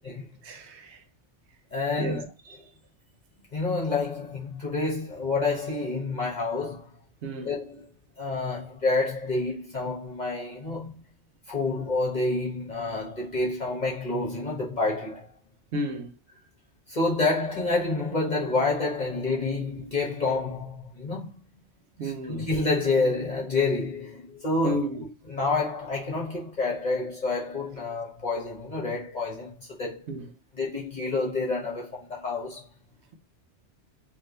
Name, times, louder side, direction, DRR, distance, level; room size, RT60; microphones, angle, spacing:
voice 1, 0.4-1.0 2.0-2.7 7.2-7.6 15.7-16.1 22.0-22.5 24.6-25.0 30.1-30.3, equal, 70° right, 1.1 m, -32 dB
voice 2, 1.7-2.2 3.5-6.9 7.4-7.8 8.2-10.9 11.5-15.3 16.9-21.4 22.0-24.9 25.3-29.5 29.8-30.0 30.5-32.6, left 3 dB, 40° left, 1.1 m, -28 dB
3.3 x 2.9 x 3.9 m
omnidirectional pair, 1.2 m